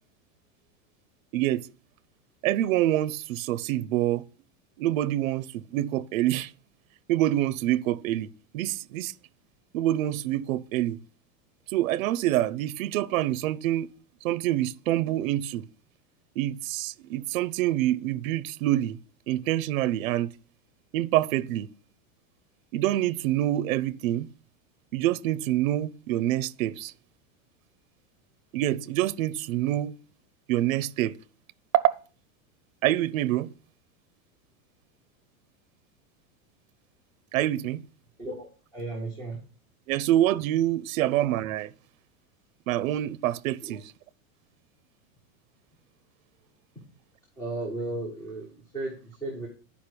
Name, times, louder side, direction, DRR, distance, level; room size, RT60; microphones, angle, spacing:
voice 1, 1.3-1.7 2.4-4.2 4.8-6.5 7.1-9.1 9.7-11.0 11.7-13.9 14.2-15.7 16.4-19.0 19.3-20.3 20.9-21.7 22.7-24.3 24.9-26.9 28.5-29.9 30.5-31.2 31.7-32.0 32.8-33.5 37.3-37.8 39.9-41.7 42.7-43.8, right 14 dB, 75° right, 0.7 m, -26 dB
voice 2, 38.2-39.4 43.6-43.8 47.4-49.5, right 2 dB, 10° left, 1.7 m, -35 dB
10.5 x 5.1 x 6.8 m
supercardioid pair, 175°, 41 cm